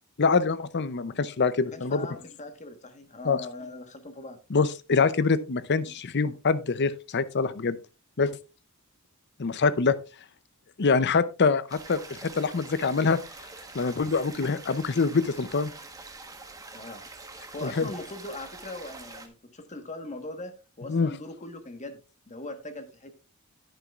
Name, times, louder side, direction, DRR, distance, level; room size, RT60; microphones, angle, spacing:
voice 1, 0.2-2.0 3.2-3.4 4.5-7.8 8.2-8.3 9.4-10.0 10.8-12.0 12.3-13.2 13.7-15.7 17.6-17.9 20.9-21.1, left 4 dB, 55° left, 0.6 m, -25 dB
voice 2, 1.6-4.4 5.9-6.0 16.7-17.1 17.3-20.5 20.8-22.0 22.3-23.1, left 2 dB, 35° left, 1.4 m, -40 dB
sound 1, 11.7-19.3, right 3 dB, 15° right, 1.2 m, -45 dB
10.0 x 9.8 x 2.4 m
head